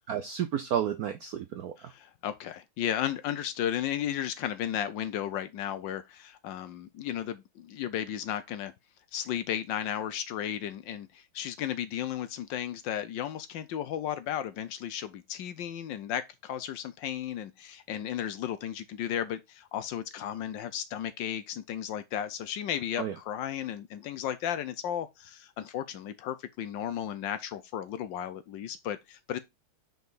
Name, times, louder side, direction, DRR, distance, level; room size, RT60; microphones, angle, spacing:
voice 1, 0.1-1.9 23.0-23.1, right 9 dB, 75° right, 0.8 m, -31 dB
voice 2, 1.8-8.7 9.1-29.4, left 10 dB, 75° left, 1.2 m, -34 dB
5.4 x 4.7 x 3.8 m
omnidirectional pair, 2.3 m